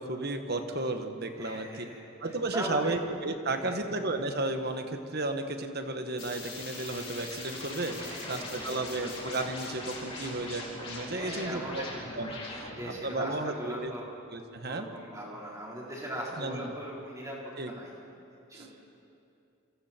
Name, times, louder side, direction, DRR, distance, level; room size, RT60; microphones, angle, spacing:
voice 1, 0.0-1.8 2.2-11.8 12.1-13.9 14.3-14.9 16.4-16.7 17.6-17.7 18.5-18.7, right 2 dB, 45° right, 6 dB, 1.4 m, -33 dB
voice 2, 1.4-2.0 2.5-3.0 3.5-3.8 8.0-8.7 9.0-9.1 11.1-11.9 12.5-14.1 14.7-17.4 17.7-17.9 18.5-18.7, right 1 dB, 15° right, -5 dB, 4.5 m, -39 dB
sound 1, 6.2-12.9, left 2 dB, 25° left, 4.2 m, -41 dB
27.5 x 24.5 x 4.5 m, 2.6 s
head